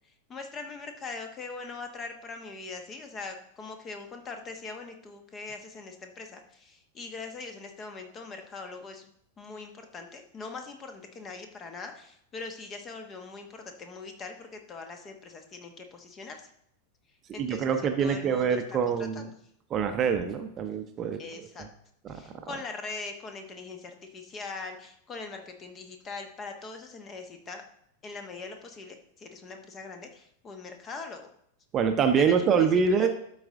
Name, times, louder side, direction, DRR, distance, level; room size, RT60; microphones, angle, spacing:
voice 1, 0.3-9.1 9.4-16.5 17.3-19.3 21.2-21.7 22.1-27.6 28.0-31.3 32.2-33.1, left 4 dB, 25° left, 5 dB, 1.2 m, -41 dB
voice 2, 17.3-19.3 19.7-21.7 22.0-22.5 31.7-33.1, right 6 dB, 30° right, 7 dB, 0.7 m, -26 dB
12.5 x 4.1 x 3.7 m, 0.70 s
figure-of-eight pair, 90°, 0 cm